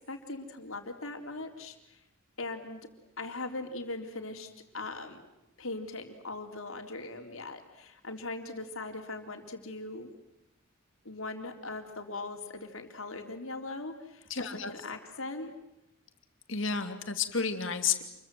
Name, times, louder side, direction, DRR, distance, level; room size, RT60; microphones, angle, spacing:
voice 1, 0.1-2.0 2.4-2.8 3.2-5.2 5.6-10.1 11.0-15.5, left 2 dB, 85° left, 5 dB, 3.9 m, -40 dB
voice 2, 14.3-14.7 16.5-18.0, left 6 dB, 65° left, 7 dB, 2.9 m, -31 dB
28.5 x 23.0 x 7.9 m, 0.89 s
head